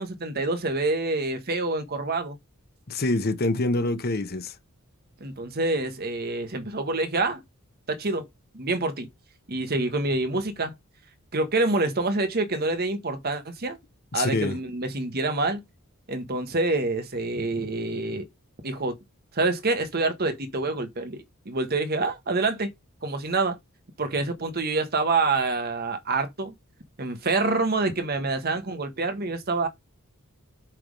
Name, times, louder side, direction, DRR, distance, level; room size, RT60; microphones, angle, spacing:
voice 1, 0.0-2.4 5.2-7.4 7.9-8.3 8.5-9.1 9.5-10.7 11.3-13.8 14.1-15.6 16.1-18.3 18.6-18.9 19.3-22.7 23.0-23.6 24.0-26.5 27.0-29.7, right 3 dB, 45° right, 1.2 m, -27 dB
voice 2, 2.9-4.5 14.1-14.6, left 2 dB, 45° left, 0.9 m, -26 dB
7.6 x 3.5 x 5.1 m
head